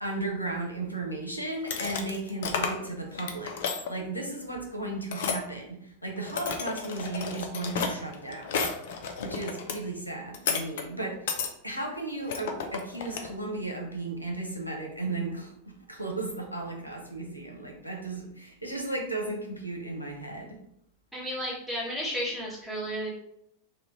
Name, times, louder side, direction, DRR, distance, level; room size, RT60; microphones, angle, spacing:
voice 1, 0.0-8.6 9.2-11.3 11.6-20.6, right 2 dB, 90° right, 1 dB, 0.7 m, -35 dB
sound 1, 1.6-2.9 3.2-3.9 5.1-5.4 6.2-9.8 10.3-10.8 11.3-11.5 12.3-13.3, left 6 dB, 55° left, 0.4 m, -32 dB
voice 2, 21.1-23.1, equal, ahead, -6 dB, 1.3 m, -33 dB
3.2 x 2.4 x 3.5 m, 0.73 s
figure-of-eight pair, 90°, 0 cm